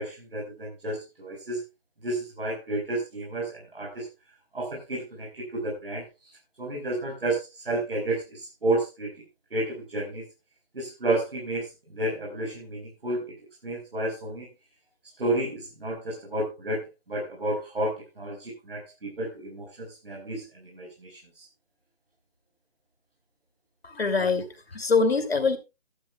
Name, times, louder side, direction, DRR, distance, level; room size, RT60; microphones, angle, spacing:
voice 1, 0.0-1.6 2.0-4.1 4.5-9.1 9.5-10.2 10.7-13.3 13.6-14.5 15.2-21.5, right 2 dB, 70° right, 4.8 m, -31 dB
voice 2, 23.8-25.6, left 4 dB, 85° left, 2.6 m, -24 dB
15.0 x 12.0 x 2.3 m
hypercardioid pair, 175°, 30 cm